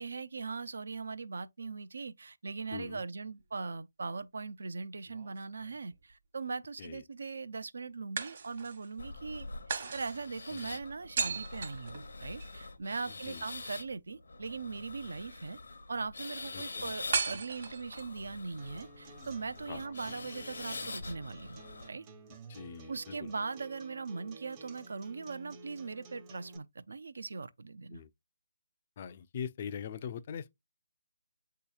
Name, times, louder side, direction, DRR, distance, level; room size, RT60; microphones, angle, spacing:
voice 1, 0.0-9.5 9.9-15.6 15.9-21.6 21.9-22.1 22.9-28.0, right 4 dB, 65° right, 0.4 m, -40 dB
voice 2, 2.7-3.0 6.8-7.0 10.5-10.8 13.3-13.4 16.5-16.9 19.7-19.9 22.5-23.3 27.9-28.1 29.0-30.5, left 7 dB, 35° left, 0.3 m, -42 dB
sound 1, 5.1-6.1 8.2-8.9 9.7-12.5 17.1-18.2, right 5 dB, 50° right, 1.1 m, -37 dB
sound 2, 9.0-21.9, left 3 dB, 70° left, 0.7 m, -45 dB
Acoustic guitar, 18.6-26.6, right 3 dB, 20° right, 0.6 m, -52 dB
8.0 x 2.8 x 2.3 m
figure-of-eight pair, 150°, 0 cm